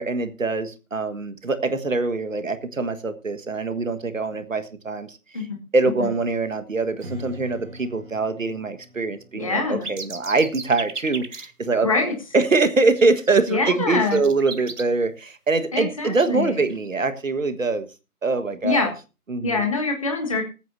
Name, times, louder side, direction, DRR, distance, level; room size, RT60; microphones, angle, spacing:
voice 1, 0.0-5.2 5.7-17.9 18.2-18.9 19.3-19.6, right 3 dB, 55° right, 10 dB, 1.6 m, -23 dB
Strum, 7.0-12.2, left 1 dB, 35° right, 2.4 m, -44 dB
voice 2, 9.3-9.9 11.8-12.1 13.5-14.2 15.7-16.6 18.6-18.9 19.4-20.4, left 4 dB, 20° left, 3 dB, 1.5 m, -24 dB
sound 1, 9.8-11.5 12.4-12.5 12.8-14.8 15.8-15.9 16.1-16.9, right 4 dB, 85° right, 1.7 m, -35 dB
21.0 x 9.1 x 2.7 m, 0.30 s
figure-of-eight pair, 170°, 45 cm